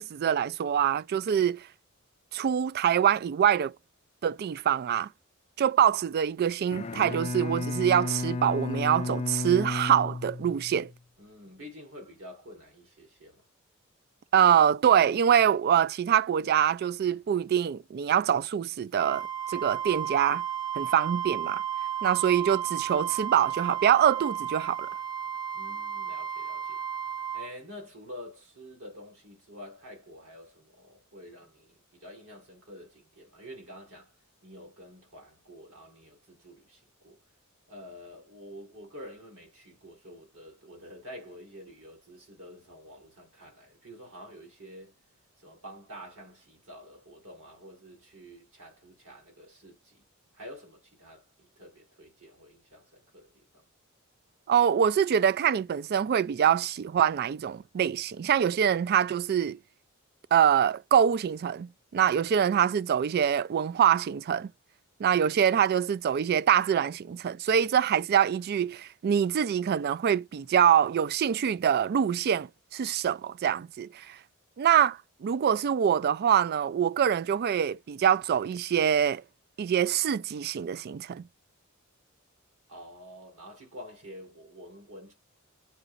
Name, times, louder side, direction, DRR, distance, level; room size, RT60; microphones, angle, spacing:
voice 1, 0.0-1.6 2.3-3.7 4.2-5.1 5.6-10.9 14.3-20.4 20.8-21.6 22.0-24.9 54.5-59.6 60.3-64.5 65.0-74.2 74.6-79.2 79.6-81.2, right 9 dB, 50° right, 0.3 m, -25 dB
Bowed string instrument, 6.6-11.0, left 3 dB, 30° left, 0.4 m, -33 dB
voice 2, 11.2-13.4 25.5-26.8 27.3-34.1 34.4-37.2 37.7-44.9 45.4-50.0 50.3-53.6 82.7-85.1, equal, 75° right, 4.9 m, -48 dB
Wind instrument woodwind instrument, 19.0-27.5, right 10 dB, 20° right, 0.7 m, -33 dB
10.0 x 3.9 x 2.5 m
head